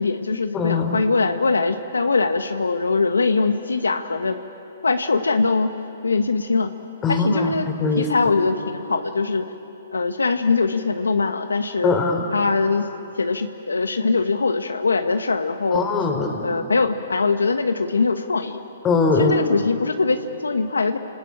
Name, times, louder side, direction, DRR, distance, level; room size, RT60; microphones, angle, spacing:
voice 1, 0.0-4.4 4.8-5.7 6.0-6.7 7.1-7.7 8.0-9.5 9.9-11.9 12.3-12.9 13.2-15.8 16.4-18.6 19.2-21.0, left 4 dB, 85° left, 8 dB, 1.2 m, -22 dB
voice 2, 0.5-1.0 7.0-8.1 11.8-12.2 15.7-16.5 18.8-19.4, left 4 dB, 20° left, 4 dB, 4.0 m, -21 dB
29.5 x 19.5 x 8.7 m, 2.9 s
hypercardioid pair, 130°, 0 cm